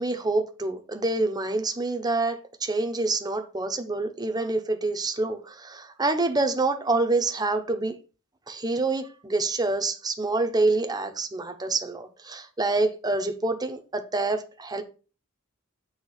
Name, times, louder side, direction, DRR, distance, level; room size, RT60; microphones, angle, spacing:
voice 1, 0.0-7.9 8.5-14.8, right 2 dB, 20° right, 0.9 m, -27 dB
8.1 x 3.7 x 5.6 m
head